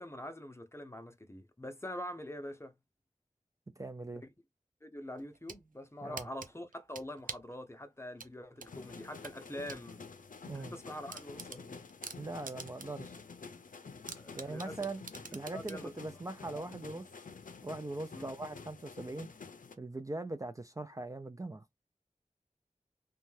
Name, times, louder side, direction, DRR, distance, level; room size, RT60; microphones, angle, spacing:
voice 1, 0.0-2.7 4.1-4.3 4.8-10.0 10.5-11.9 14.1-14.8 15.5-15.9 16.5-16.7 18.1-18.4, left 1 dB, 20° left, 0.6 m, -45 dB
voice 2, 3.8-4.2 6.0-6.3 10.5-10.7 12.2-13.2 14.4-15.0 15.3-17.0 17.6-19.3 19.8-21.6, right 2 dB, 25° right, 0.3 m, -41 dB
sound 1, 5.2-5.6 6.2-7.5 8.2-9.8 10.2-10.3 10.7-10.8 11.1-13.1 13.4-13.5 14.1-15.8, right 5 dB, 85° right, 0.4 m, -45 dB
sound 2, 8.7-19.7, left 5 dB, 85° left, 0.4 m, -50 dB
2.6 x 2.2 x 3.1 m
wide cardioid pair, 40°, 14 cm